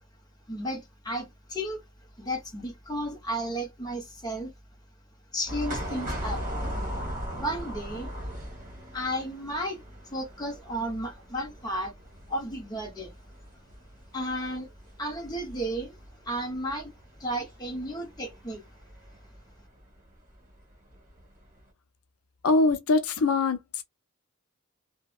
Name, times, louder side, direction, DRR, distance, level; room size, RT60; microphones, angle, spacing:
voice 1, 0.5-1.8 2.2-4.5 5.3-6.4 7.3-8.1 8.9-9.8 10.1-11.9 12.3-13.1 14.1-14.7 15.0-16.0 16.2-16.9 17.2-18.6, equal, 20° left, 0.7 m, -33 dB
sound 1, 5.5-19.5 19.8-19.9 20.9-21.2 21.6-21.7, equal, 35° right, 1.2 m, -38 dB
voice 2, 22.4-23.8, left 3 dB, 80° left, 0.5 m, -23 dB
2.7 x 2.1 x 2.3 m
head